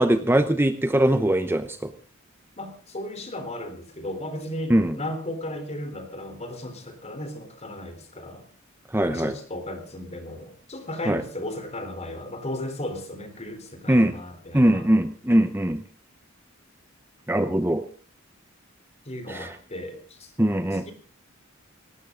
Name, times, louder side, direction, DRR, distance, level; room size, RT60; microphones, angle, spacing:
voice 1, 0.0-1.8 4.7-4.9 8.9-9.3 11.1-11.2 13.9-14.1 14.5-15.8 17.3-17.9 19.3-19.6 20.4-20.8, right 1 dB, 10° right, 9 dB, 0.8 m, -21 dB
voice 2, 2.6-8.5 9.1-14.9 19.0-20.3 20.7-20.9, left 1 dB, 30° left, 8 dB, 3.8 m, -35 dB
19.0 x 17.5 x 3.8 m, 0.40 s
head